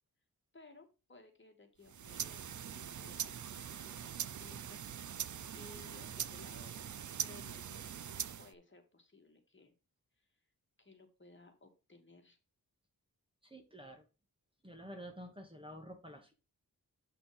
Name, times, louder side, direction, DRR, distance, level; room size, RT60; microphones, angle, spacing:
voice 1, 0.5-6.9 7.2-7.9 8.4-9.7 10.2-10.3 10.8-12.4, left 3 dB, 30° left, 4 dB, 2.3 m, -59 dB
sound 1, 1.8-8.5, right 8 dB, 55° right, 0.5 m, -42 dB
voice 2, 13.4-14.1 14.6-16.3, equal, 15° right, 4 dB, 1.9 m, -50 dB
8.5 x 6.0 x 3.5 m, 0.30 s
wide cardioid pair, 95°, 36 cm